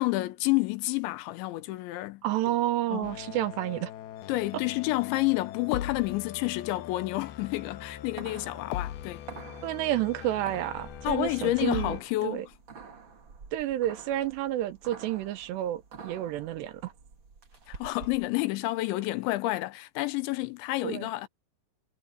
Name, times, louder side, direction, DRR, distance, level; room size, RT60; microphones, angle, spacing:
voice 1, 0.0-2.2 2.9-3.1 4.3-9.2 11.0-12.5 17.7-21.3, left 19 dB, 85° left, 3.2 m, -29 dB
voice 2, 2.2-3.9 9.6-12.0 12.2-12.5 13.5-16.9 20.8-21.1, right 14 dB, 75° right, 3.0 m, -30 dB
sound 1, 3.0-12.0, left 11 dB, 70° left, 2.7 m, -40 dB
sound 2, 7.5-18.3, right 5 dB, 40° right, 2.0 m, -48 dB
omnidirectional pair, 5.2 m